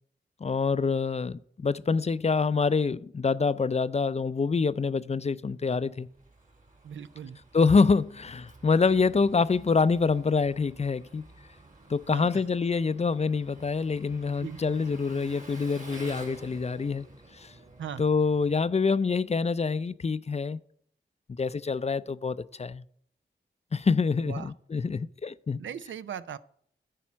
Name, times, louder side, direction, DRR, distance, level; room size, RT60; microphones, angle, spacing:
voice 1, 0.4-6.1 7.5-11.3 11.9-17.1 17.3-17.5 18.0-20.6 21.4-22.8 23.7-25.6, left 4 dB, 35° left, 0.4 m, -26 dB
Engine, 5.8-19.2, right 2 dB, 40° right, 2.0 m, -50 dB
voice 2, 6.8-7.4 12.1-12.4 14.4-14.6 17.8-18.1 24.2-24.5 25.6-26.4, right 8 dB, 85° right, 0.5 m, -39 dB
10.0 x 4.3 x 7.3 m
cardioid pair, 45°, 19 cm